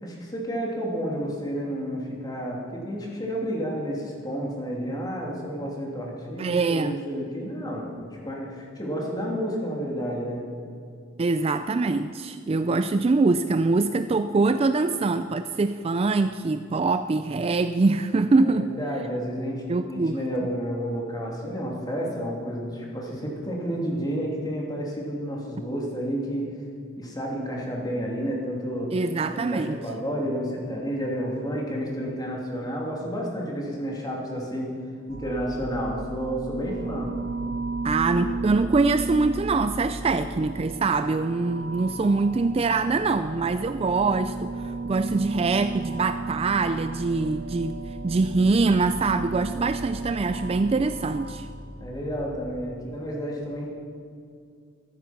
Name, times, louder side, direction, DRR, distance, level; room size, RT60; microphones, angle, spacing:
voice 1, 0.0-10.4 18.4-26.5 27.0-29.0 29.3-34.7 35.1-37.1 51.8-53.7, equal, 20° left, -2 dB, 2.9 m, -31 dB
voice 2, 6.4-7.0 11.2-18.7 19.7-20.2 28.9-29.8 37.8-47.8 48.0-51.5, right 3 dB, 30° right, 10 dB, 0.3 m, -24 dB
sound 1, 35.1-52.7, right 3 dB, 80° right, 2.2 m, -34 dB
15.0 x 13.5 x 5.9 m, 2.3 s
head